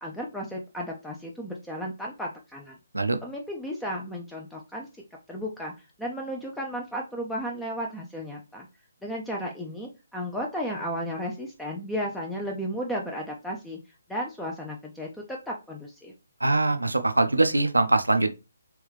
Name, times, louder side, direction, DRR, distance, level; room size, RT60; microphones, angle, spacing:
voice 1, 0.0-2.8 3.2-4.9 5.3-5.7 6.0-8.7 9.0-13.8 14.1-16.1, equal, 5° left, 0.4 m, -34 dB
voice 2, 16.4-18.3, right 2 dB, 80° right, 0.5 m, -22 dB
3.4 x 3.1 x 3.2 m
figure-of-eight pair, 140°, 0 cm